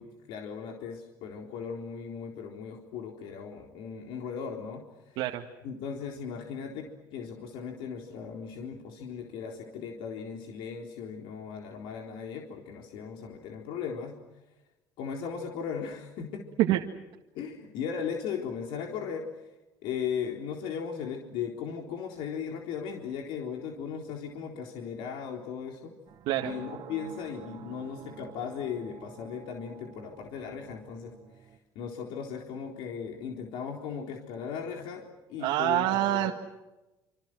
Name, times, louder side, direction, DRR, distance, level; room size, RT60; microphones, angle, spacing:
voice 1, 0.0-5.2 5.6-14.1 15.0-16.4 17.3-19.5 19.8-25.9 26.4-31.5 31.8-36.3, left 7 dB, 80° left, 2 dB, 3.9 m, -37 dB
sound 1, 26.1-31.6, right 10 dB, 55° right, 2.5 m, -49 dB
voice 2, 35.4-36.3, right 14 dB, 85° right, 3 dB, 2.0 m, -26 dB
28.0 x 27.0 x 6.3 m, 1.0 s
cardioid pair, 135°, 8 cm